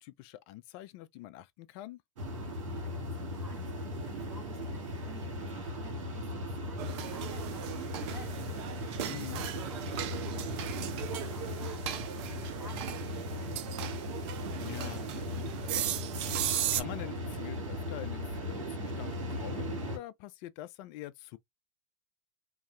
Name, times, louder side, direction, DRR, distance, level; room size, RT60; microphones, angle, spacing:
voice 1, 0.0-2.0 9.0-9.4 14.6-16.0 16.7-21.4, left 15 dB, 50° left, 0.4 m, -45 dB
sound 1, 2.2-20.0, left 1 dB, 75° right, 1.4 m, -38 dB
voice 2, 2.7-14.0, right 1 dB, 5° right, 1.1 m, -53 dB
sound 2, 6.8-16.8, right 11 dB, 55° right, 0.6 m, -37 dB
2.6 x 2.3 x 3.2 m
hypercardioid pair, 95°, 16 cm